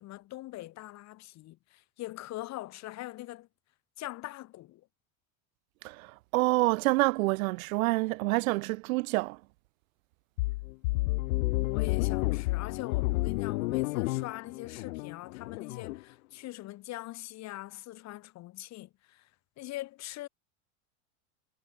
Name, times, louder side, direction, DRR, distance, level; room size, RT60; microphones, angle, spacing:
voice 1, 0.0-3.5 4.0-4.9 11.7-19.3 19.6-20.3, left 17 dB, 40° left, 3.7 m, -42 dB
voice 2, 6.3-9.4, right 23 dB, 75° right, 0.9 m, -27 dB
sound 1, 10.4-16.0, left 22 dB, 80° left, 1.0 m, -30 dB
supercardioid pair, 155°, 41 cm